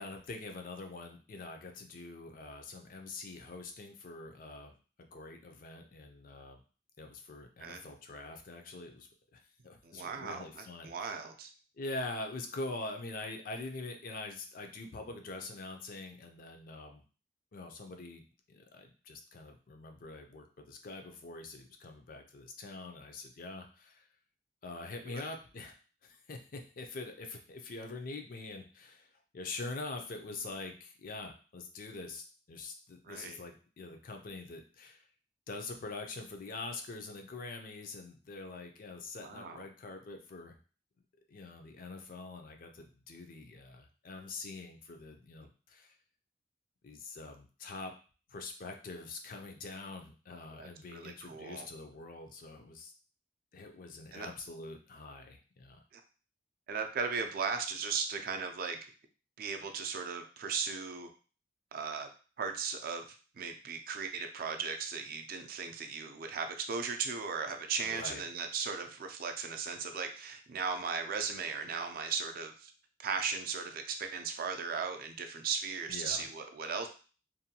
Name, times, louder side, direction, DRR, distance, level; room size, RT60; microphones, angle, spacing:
voice 1, 0.0-4.7 5.0-6.6 7.0-11.1 11.8-17.0 17.5-18.2 18.5-24.0 24.6-25.8 26.0-35.1 35.5-40.5 41.3-45.9 46.8-47.9 48.3-52.9 53.5-55.8 67.8-68.2 75.9-76.3, left 3 dB, 50° left, 4 dB, 0.4 m, -44 dB
voice 2, 9.8-11.5 25.0-25.3 33.0-33.4 39.2-39.6 50.5-51.7 54.1-54.3 55.9-56.0 56.7-58.8 59.4-61.1 61.7-62.1 62.4-63.1 63.3-72.7 73.0-76.9, right 5 dB, 55° right, 5 dB, 0.4 m, -37 dB
2.6 x 2.2 x 2.7 m, 0.37 s
head